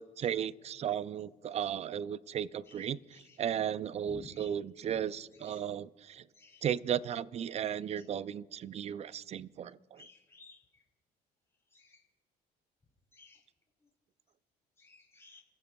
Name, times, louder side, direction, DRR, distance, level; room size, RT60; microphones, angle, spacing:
voice 1, 0.0-6.2 6.6-10.0, right 9 dB, 40° right, 18 dB, 0.4 m, -35 dB
voice 2, 4.1-4.5 6.4-6.6 10.0-10.6 13.2-13.4 14.8-15.4, left 2 dB, 15° left, 0 dB, 3.0 m, -53 dB
29.0 x 15.0 x 2.3 m, 1.4 s
cardioid pair, 110°, 17 cm